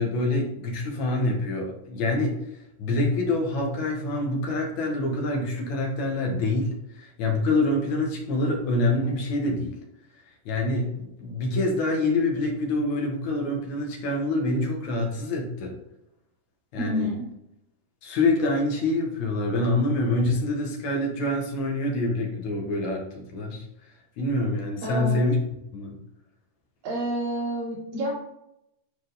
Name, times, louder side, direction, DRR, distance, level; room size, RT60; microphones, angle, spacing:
voice 1, 0.0-2.4 2.8-9.8 10.5-15.7 16.7-17.1 18.0-23.6 24.2-25.4 25.7-25.9, left 2 dB, 60° left, 0 dB, 2.8 m, -26 dB
voice 2, 16.8-17.3 24.8-25.2 26.8-28.1, equal, 70° right, -7 dB, 4.8 m, -29 dB
12.0 x 4.6 x 4.1 m, 0.83 s
omnidirectional pair, 4.0 m